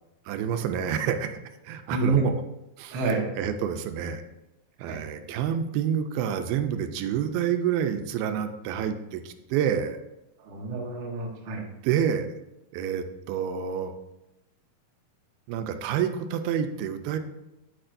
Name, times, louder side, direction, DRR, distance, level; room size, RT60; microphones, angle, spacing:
voice 1, 0.3-2.4 2.8-4.2 4.8-10.0 11.8-12.4 12.7-13.9 15.5-17.2, right 8 dB, 90° right, 8 dB, 2.5 m, -28 dB
voice 2, 1.9-2.2 2.9-3.2 4.8-5.0 10.5-11.6, right 4 dB, 65° right, 0 dB, 1.2 m, -27 dB
8.8 x 8.7 x 2.6 m, 0.94 s
omnidirectional pair, 4.2 m